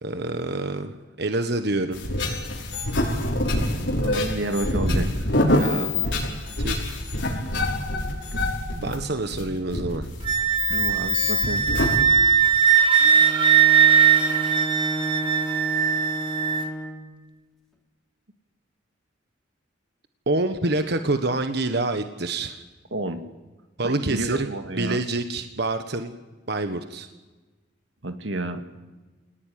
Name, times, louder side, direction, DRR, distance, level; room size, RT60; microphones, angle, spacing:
voice 1, 0.0-2.0 5.5-5.9 6.6-6.8 8.8-10.1 20.3-22.6 23.8-24.5 24.8-26.1 26.5-27.1, right 2 dB, 60° right, 8 dB, 1.4 m, -27 dB
sound 1, 1.9-12.0, left 2 dB, 75° left, 5.8 m, -25 dB
voice 2, 3.5-5.3 10.7-11.7 22.9-23.3 23.8-25.0 28.0-28.6, right 2 dB, 90° right, 8 dB, 2.1 m, -30 dB
Wind instrument woodwind instrument, 10.2-16.6, right 8 dB, 30° right, 2.1 m, -19 dB
Bowed string instrument, 13.0-17.2, right 1 dB, ahead, 3.5 m, -32 dB
26.0 x 19.0 x 9.4 m, 1.2 s
head